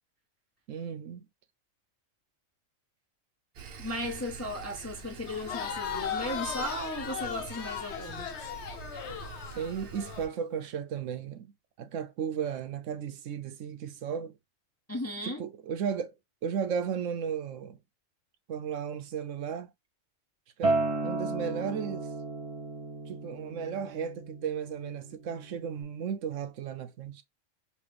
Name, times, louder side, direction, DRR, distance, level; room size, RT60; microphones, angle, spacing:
voice 1, 0.7-1.3 9.5-11.5 11.8-14.4 15.2-16.1 16.4-17.8 18.5-19.7 20.6-22.1 23.1-27.2, right 7 dB, 80° right, 1.0 m, -35 dB
Sawing, 3.6-10.3, right 5 dB, 55° right, 0.8 m, -45 dB
voice 2, 3.8-8.3 14.9-15.4, left 1 dB, 20° left, 0.4 m, -36 dB
Crowd, 5.3-10.2, left 8 dB, 65° left, 0.9 m, -37 dB
Acoustic guitar, 20.6-25.8, right 2 dB, 30° right, 1.0 m, -33 dB
3.1 x 2.9 x 3.3 m
omnidirectional pair, 1.3 m